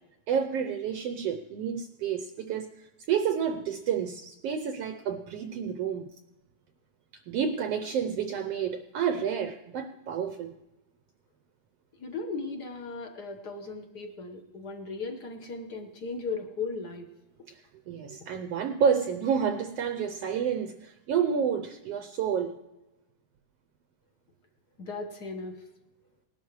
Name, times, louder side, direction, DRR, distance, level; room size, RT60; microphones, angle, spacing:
voice 1, 0.3-6.1 7.3-10.6 17.5-17.6 17.9-22.5, right 7 dB, 75° right, 7 dB, 1.4 m, -29 dB
voice 2, 12.0-17.1 24.8-25.6, left 4 dB, 55° left, 5 dB, 1.1 m, -37 dB
20.0 x 12.0 x 3.1 m, 1.0 s
omnidirectional pair, 3.4 m